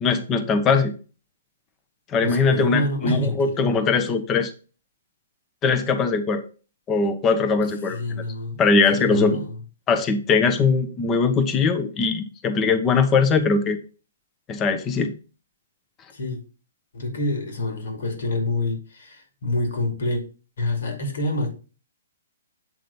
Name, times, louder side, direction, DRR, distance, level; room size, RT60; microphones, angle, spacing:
voice 1, 0.0-0.9 2.1-4.5 5.6-6.4 6.9-8.2 8.6-9.4 9.9-13.8 14.5-15.1, left 4 dB, 20° left, 0.9 m, -21 dB
voice 2, 2.2-3.7 7.9-8.6 8.9-9.5 16.1-16.4 16.9-20.2 20.6-21.5, left 1 dB, 70° left, 2.4 m, -27 dB
7.8 x 3.7 x 5.3 m
hypercardioid pair, 145°, 0 cm